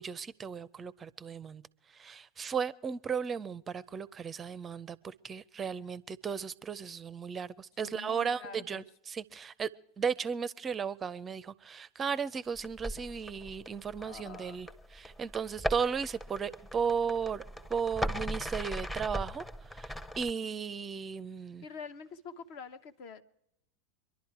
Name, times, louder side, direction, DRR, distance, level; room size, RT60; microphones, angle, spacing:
voice 1, 0.0-1.6 1.9-9.7 10.0-17.4 17.7-21.6, right 6 dB, 25° right, 0.5 m, -35 dB
voice 2, 7.8-8.9 14.0-14.6 21.6-23.2, left 5 dB, 50° left, 0.9 m, -46 dB
sound 1, 12.5-20.3, equal, 10° left, 0.8 m, -39 dB
24.5 x 11.5 x 4.6 m
figure-of-eight pair, 85°, 0 cm